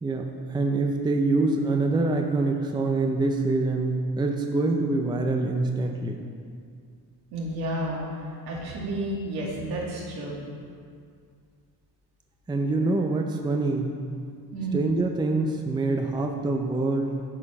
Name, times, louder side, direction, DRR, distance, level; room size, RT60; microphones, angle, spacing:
voice 1, 0.0-6.2 12.5-13.9 14.7-17.2, right 2 dB, 10° right, 3 dB, 0.5 m, -25 dB
voice 2, 7.3-8.0 8.4-10.3 14.5-14.8, right 1 dB, 70° right, -4 dB, 2.5 m, -31 dB
9.8 x 5.0 x 5.8 m, 2.2 s
cardioid pair, 115°, 39 cm